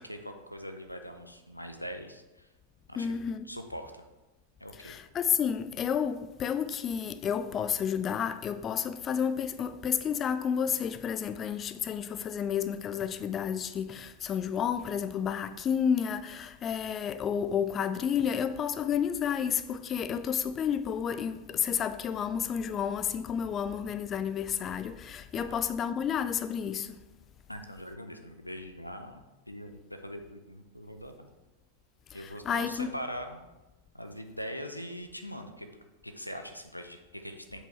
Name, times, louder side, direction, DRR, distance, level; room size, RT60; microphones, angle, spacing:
voice 1, 0.0-2.5 2.9-3.2 3.5-4.0 4.6-5.0 25.3-25.6 27.5-31.3 32.1-33.4 33.9-35.7 36.0-37.7, equal, 90° left, 0.7 m, -42 dB
voice 2, 3.0-3.5 4.8-27.0 32.1-32.9, left 8 dB, 25° left, 0.4 m, -31 dB
7.8 x 4.9 x 4.5 m
figure-of-eight pair, 90°, 0 cm